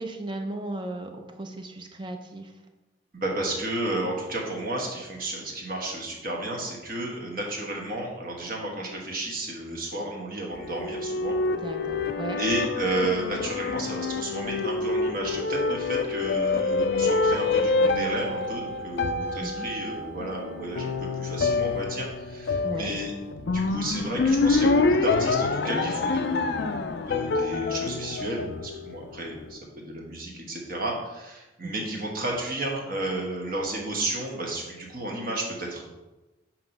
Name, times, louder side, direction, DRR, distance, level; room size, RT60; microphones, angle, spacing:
voice 1, 0.0-2.5 11.6-12.4 19.4-19.7 22.6-22.9 31.6-31.9, right 2 dB, 25° right, 4 dB, 0.6 m, -36 dB
voice 2, 3.1-11.4 12.4-23.1 23.4-35.8, right 1 dB, 45° right, -1 dB, 1.2 m, -32 dB
sound 1, 10.5-29.1, left 3 dB, 55° left, 0.4 m, -27 dB
7.5 x 3.0 x 5.3 m, 1.1 s
head